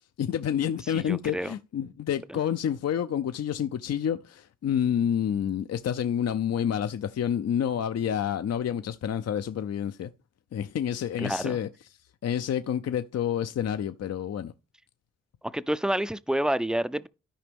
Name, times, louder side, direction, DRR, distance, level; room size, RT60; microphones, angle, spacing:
voice 1, 0.2-10.1 10.5-11.7 12.2-14.5, left 9 dB, 55° left, 0.5 m, -28 dB
voice 2, 0.9-1.5 2.3-2.4 11.2-11.6 15.4-17.1, right 1 dB, ahead, 0.4 m, -29 dB
13.0 x 5.0 x 3.5 m
cardioid pair, 50°, 31 cm